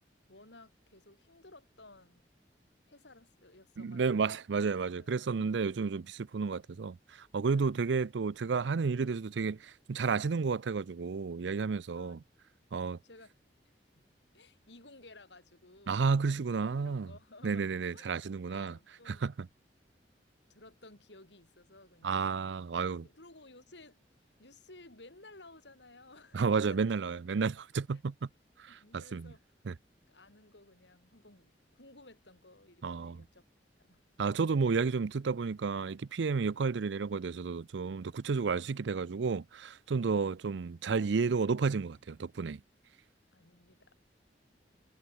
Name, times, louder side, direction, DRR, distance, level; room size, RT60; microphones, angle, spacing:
voice 1, 0.3-2.2 2.9-4.4 5.0-5.6 7.5-7.9 11.9-12.2 13.0-13.3 14.0-14.1 14.3-16.5 16.8-17.7 17.9-18.1 18.5-19.2 20.5-22.5 23.0-24.0 24.4-26.9 27.9-28.0 28.7-29.4 30.1-33.4 33.8-34.0 43.3-43.9, left 2 dB, 80° left, 7.8 m, -56 dB
voice 2, 3.8-12.2 12.7-13.0 15.9-17.1 17.4-18.8 19.1-19.5 22.0-23.1 26.3-28.3 28.6-29.3 29.7-29.8 32.8-33.2 34.2-42.6, right 5 dB, 85° right, 0.5 m, -31 dB
head